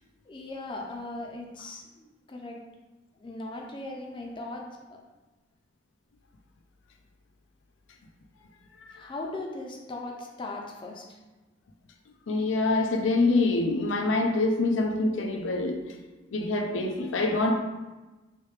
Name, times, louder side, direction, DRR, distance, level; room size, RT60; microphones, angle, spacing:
voice 1, 0.3-2.6 3.2-5.0 8.9-11.2, left 2 dB, 25° left, 0 dB, 0.4 m, -38 dB
voice 2, 12.3-15.9 16.3-17.5, left 2 dB, 90° left, 4 dB, 0.4 m, -25 dB
3.2 x 3.1 x 3.2 m, 1.1 s
head